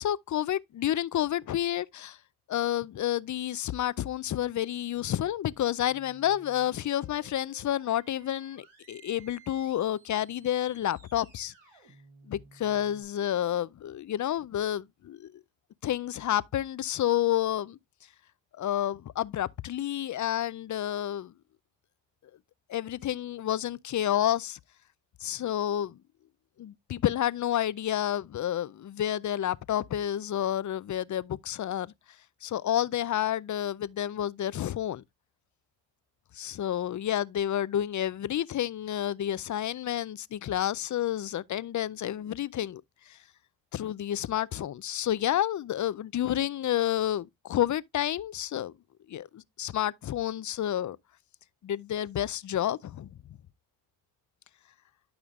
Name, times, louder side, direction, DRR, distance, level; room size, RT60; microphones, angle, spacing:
voice 1, 0.0-2.2 2.5-11.5 12.3-15.4 15.8-17.8 18.5-21.3 22.7-24.6 25.2-26.0 26.6-31.9 32.4-35.0 36.3-42.8 43.1-43.2 43.7-48.7 49.1-51.0 51.6-53.1, left 11 dB, 40° left, 0.5 m, -30 dB
sound 1, 5.9-13.0, right 5 dB, 80° right, 3.5 m, -57 dB
12.0 x 5.0 x 2.4 m
cardioid pair, 65°, 45 cm